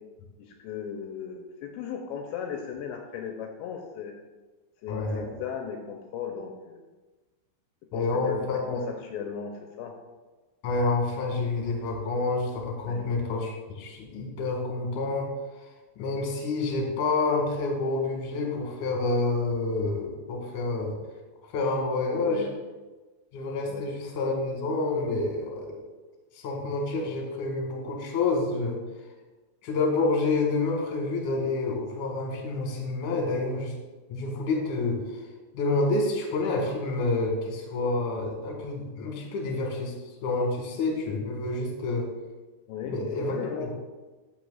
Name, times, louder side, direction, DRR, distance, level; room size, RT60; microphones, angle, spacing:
voice 1, 0.4-4.1 4.8-6.8 7.9-9.9 12.8-13.1 22.1-22.6 23.7-23.9 42.7-43.7, left 7 dB, 80° left, 2 dB, 2.7 m, -36 dB
voice 2, 4.9-5.3 7.9-8.8 10.6-15.3 16.0-20.9 21.5-22.4 23.3-25.8 26.3-28.8 29.6-33.7 34.1-35.0 35.5-39.9 40.2-42.1 42.8-43.3 43.6-43.7, left 3 dB, 55° left, 0 dB, 2.5 m, -28 dB
13.0 x 6.1 x 2.4 m, 1.2 s
omnidirectional pair, 5.3 m